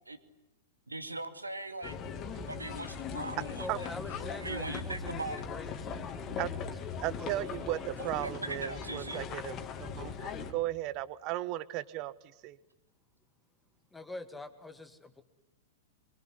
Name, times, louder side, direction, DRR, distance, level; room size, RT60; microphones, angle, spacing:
voice 1, 0.9-2.0 2.4-3.9 4.3-5.4 8.1-9.2, right 2 dB, 85° right, 9 dB, 2.4 m, -40 dB
sound 1, 1.8-10.5, left 6 dB, 30° left, 2.7 m, -40 dB
voice 2, 3.6-8.1 13.9-15.2, left 2 dB, 10° left, 8 dB, 2.1 m, -45 dB
voice 3, 7.0-12.1 12.4-12.6, right 15 dB, 40° right, 17 dB, 1.3 m, -36 dB
24.5 x 23.5 x 9.8 m, 0.91 s
figure-of-eight pair, 100°, 0 cm